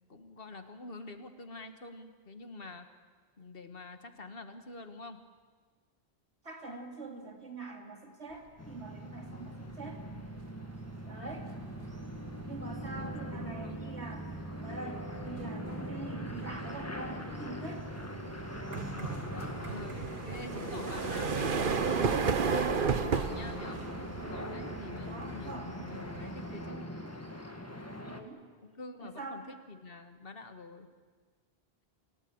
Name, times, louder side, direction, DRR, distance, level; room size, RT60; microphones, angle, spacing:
voice 1, 0.1-2.9 3.4-5.2 9.3-10.4 11.2-11.6 12.9-13.8 18.6-23.8 24.3-26.9 28.8-30.9, left 3 dB, 60° left, 8 dB, 1.8 m, -47 dB
voice 2, 6.4-10.0 11.1-11.5 12.4-14.4 14.6-17.8 24.4-24.7 25.0-25.9 28.1-28.4 29.0-29.5, right 3 dB, 80° right, 2 dB, 3.2 m, -44 dB
sound 1, 8.6-28.2, equal, 15° left, 1.7 m, -41 dB
sound 2, 9.4-9.7 10.1-26.8, right 5 dB, 55° right, 1.2 m, -35 dB
28.0 x 17.5 x 8.8 m, 1.5 s
omnidirectional pair, 1.1 m